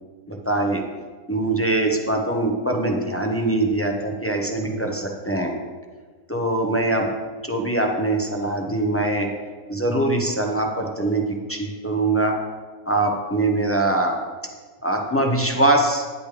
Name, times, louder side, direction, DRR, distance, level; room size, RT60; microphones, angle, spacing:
voice 1, 0.3-0.8 1.3-5.5 6.3-7.1 7.4-9.3 9.7-12.4 12.9-14.2 14.8-16.0, right 2 dB, 10° left, 1 dB, 0.7 m, -22 dB
12.5 x 10.0 x 3.4 m, 1.4 s
omnidirectional pair, 1.7 m